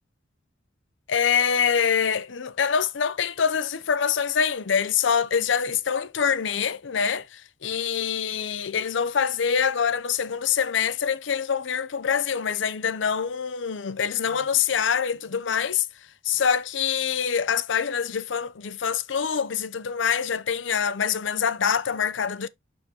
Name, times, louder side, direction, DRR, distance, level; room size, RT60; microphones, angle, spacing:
voice 1, 1.1-15.9 16.2-22.5, left 7 dB, 80° left, 0.6 m, -25 dB
6.7 x 6.2 x 2.9 m
head